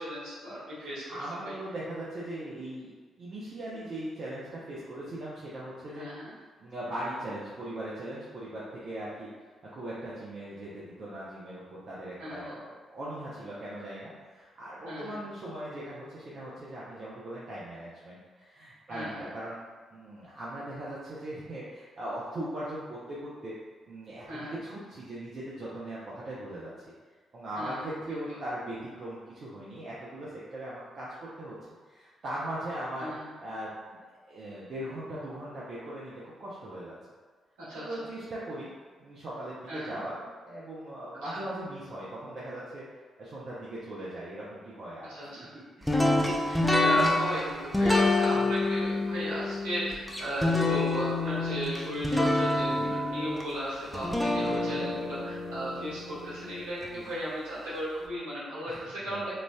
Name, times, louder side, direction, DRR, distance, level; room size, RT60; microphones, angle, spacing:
voice 1, 0.0-1.5 5.9-6.3 12.2-12.6 14.9-15.2 18.9-19.3 24.3-24.6 27.5-28.4 33.0-33.3 37.6-38.0 39.7-40.0 41.3-41.4 45.0-45.5 46.2-59.3, equal, 70° right, -11 dB, 1.3 m, -36 dB
voice 2, 0.8-2.9 3.2-6.1 6.6-9.3 9.7-19.6 19.9-23.6 23.9-26.7 27.3-31.6 31.9-34.0 34.3-36.9 37.7-38.7 39.0-42.8 43.2-46.4 48.3-48.5 52.7-52.9 54.4-54.9 56.9-57.0 58.6-59.3, right 1 dB, 50° right, -8 dB, 0.6 m, -39 dB
sound 1, 45.9-56.9, left 2 dB, 5° left, 0.5 m, -27 dB
3.0 x 2.5 x 2.2 m, 1.5 s
hypercardioid pair, 40°, 0 cm